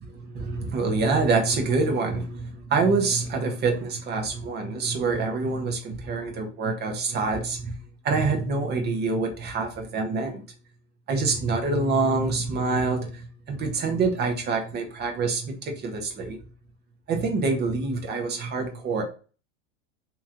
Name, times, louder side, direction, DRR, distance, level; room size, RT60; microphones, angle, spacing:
voice 1, 0.1-7.8 8.0-10.4 11.1-16.4 17.1-19.0, right 3 dB, 30° right, 4 dB, 1.0 m, -26 dB
3.1 x 3.0 x 3.7 m, 0.37 s
supercardioid pair, 145°, 35 cm